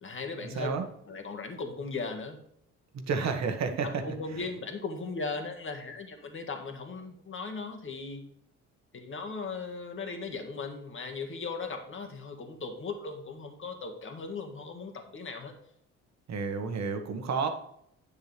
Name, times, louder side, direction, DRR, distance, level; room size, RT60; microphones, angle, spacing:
voice 1, 0.0-2.4 3.8-8.3 8.9-15.6, left 4 dB, 40° left, 4 dB, 1.8 m, -38 dB
voice 2, 2.9-4.0 16.3-17.5, right 5 dB, 60° right, 5 dB, 1.5 m, -30 dB
9.8 x 6.9 x 3.4 m, 0.69 s
cardioid pair, 90°, 30 cm